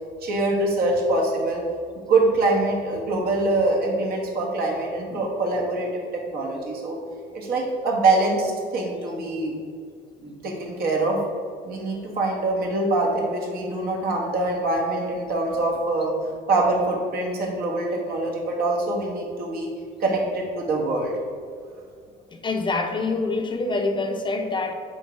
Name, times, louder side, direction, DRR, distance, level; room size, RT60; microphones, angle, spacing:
voice 1, 0.2-1.6 2.1-7.0 7.3-9.5 10.2-11.2 11.6-16.1 16.5-19.7 20.0-21.2, right 2 dB, 65° right, -1 dB, 1.5 m, -24 dB
voice 2, 22.3-24.7, left 3 dB, 30° left, 5 dB, 0.6 m, -26 dB
6.2 x 3.8 x 4.6 m, 2.2 s
cardioid pair, 110°, 17 cm